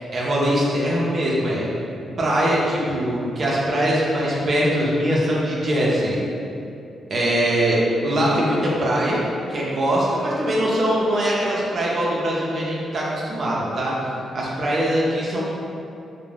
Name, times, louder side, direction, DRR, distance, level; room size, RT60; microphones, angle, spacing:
voice 1, 0.1-1.7 2.2-6.2 7.1-9.2 9.5-13.9 14.3-15.4, equal, 55° right, -5 dB, 0.5 m, -22 dB
2.4 x 2.1 x 3.2 m, 2.7 s
cardioid pair, 80°, 0 cm